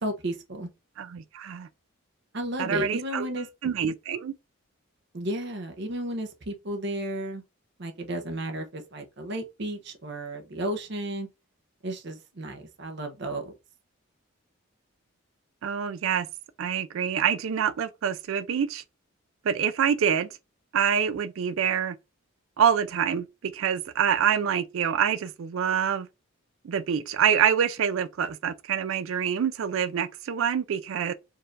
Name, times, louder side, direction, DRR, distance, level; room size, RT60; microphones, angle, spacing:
voice 1, 0.0-0.7 2.3-3.5 5.1-7.4 7.8-11.3 11.8-13.5, right 1 dB, 50° right, 0.7 m, -33 dB
voice 2, 1.0-1.7 2.6-3.3 3.6-4.3 15.6-16.3 16.6-18.8 19.4-20.3 20.7-22.0 22.6-26.1 26.6-31.1, right 8 dB, 70° right, 0.4 m, -26 dB
4.6 x 2.5 x 3.1 m
head